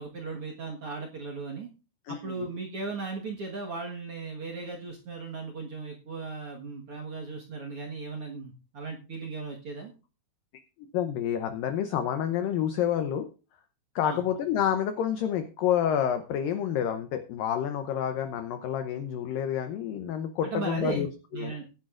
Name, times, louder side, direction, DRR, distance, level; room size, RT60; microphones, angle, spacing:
voice 1, 0.0-1.7 2.1-9.9 14.0-14.2 20.4-21.0 21.3-21.7, right 4 dB, 65° right, 0 dB, 1.4 m, -37 dB
voice 2, 2.1-2.5 10.9-13.3 14.0-21.6, left 9 dB, 75° left, 8 dB, 2.0 m, -29 dB
19.5 x 10.5 x 2.5 m, 0.33 s
omnidirectional pair, 5.0 m